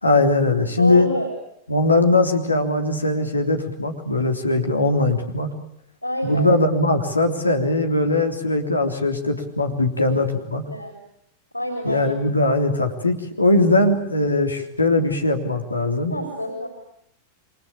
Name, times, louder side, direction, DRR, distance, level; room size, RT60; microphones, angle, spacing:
voice 1, 0.0-1.1 1.7-5.5 6.2-10.6 11.8-16.1, left 2 dB, 80° left, 5 dB, 3.4 m, -20 dB
voice 2, 0.8-1.3 6.0-6.5 10.0-10.1 10.3-10.4 10.7-10.9 11.5-12.1 16.1-16.7, equal, 90° right, 5 dB, 4.7 m, -27 dB
28.0 x 24.5 x 8.6 m, 0.73 s
figure-of-eight pair, 90°, 0 cm